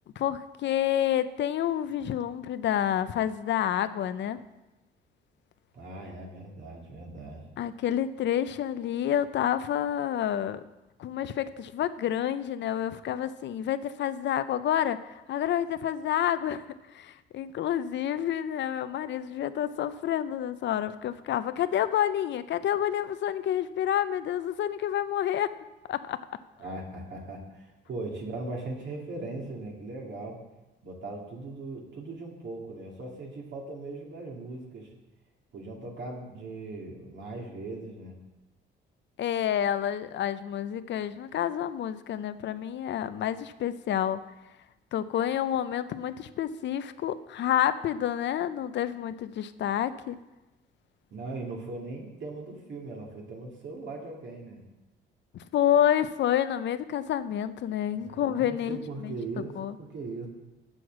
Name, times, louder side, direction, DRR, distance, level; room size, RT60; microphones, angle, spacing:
voice 1, 0.2-4.4 7.6-10.6 11.0-16.6 16.9-25.5 25.9-26.2 39.2-44.2 44.9-50.2 55.5-58.8 59.0-59.2 59.6-59.7, left 10 dB, 65° left, 13 dB, 0.5 m, -29 dB
voice 2, 5.7-7.4 26.6-30.4 30.8-34.9 35.5-38.2 51.1-54.6 57.9-60.3, right 2 dB, 65° right, 0 dB, 2.3 m, -39 dB
7.7 x 6.4 x 7.2 m, 1.0 s
cardioid pair, 90°, 20 cm